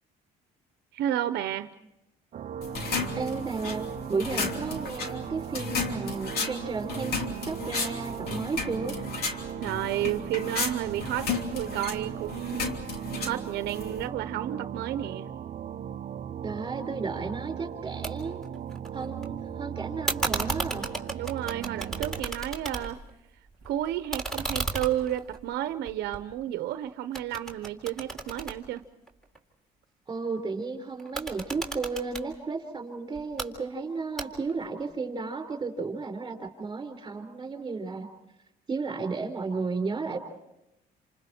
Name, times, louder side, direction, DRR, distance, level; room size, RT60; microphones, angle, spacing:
voice 1, 0.9-1.7 9.6-12.7 13.2-15.3 21.1-23.0 23.6-28.8, right 12 dB, 80° right, 10 dB, 0.9 m, -31 dB
sound 1, 2.3-22.2, right 9 dB, 50° right, 0.8 m, -38 dB
sound 2, 2.6-14.1, left 4 dB, 65° left, 3.1 m, -34 dB
voice 2, 3.1-7.2 7.5-9.0 16.4-18.5 18.9-20.9 30.1-38.1 38.7-40.2, right 4 dB, 25° right, 5 dB, 4.3 m, -33 dB
sound 3, 18.0-18.1 18.4-19.3 20.1-23.1 23.5-26.7 27.1-29.4 31.0-32.3 33.1-33.5 34.2-34.6, right 2 dB, ahead, 3.6 m, -34 dB
29.0 x 28.0 x 4.5 m, 0.89 s
cardioid pair, 110°, 17 cm